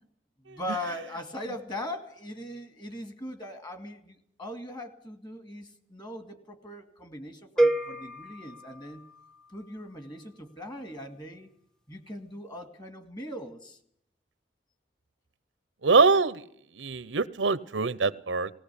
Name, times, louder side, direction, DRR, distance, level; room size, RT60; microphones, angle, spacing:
voice 1, 0.5-9.0 9.5-11.5 11.9-13.8, left 1 dB, 25° left, 9 dB, 2.2 m, -40 dB
sound 1, 7.6-9.6, right 2 dB, 5° left, 0.8 m, -29 dB
voice 2, 15.8-16.4 16.7-18.5, right 4 dB, 90° right, 17 dB, 0.8 m, -24 dB
18.5 x 18.0 x 8.4 m, 0.66 s
head